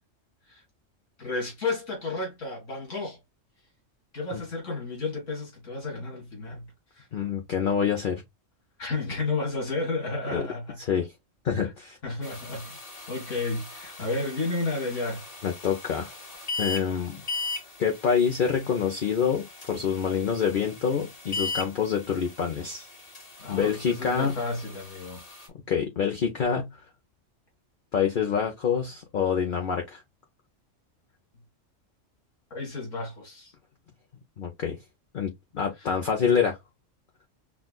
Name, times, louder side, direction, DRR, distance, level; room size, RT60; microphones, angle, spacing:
voice 1, 1.2-3.2 4.1-7.1 8.8-10.8 12.0-12.7 13.1-15.2 23.4-25.2 32.5-33.5, left 3 dB, 70° left, 2.4 m, -32 dB
voice 2, 7.1-8.2 10.3-10.4 10.8-11.1 11.4-12.0 15.4-16.2 16.6-17.2 17.8-22.9 23.5-24.4 25.7-26.8 27.9-30.0 34.4-34.8 35.1-36.6, left 7 dB, 50° left, 0.8 m, -26 dB
sound 1, 12.2-25.5, left 3 dB, 30° left, 1.2 m, -39 dB
6.0 x 2.4 x 2.2 m
omnidirectional pair, 1.3 m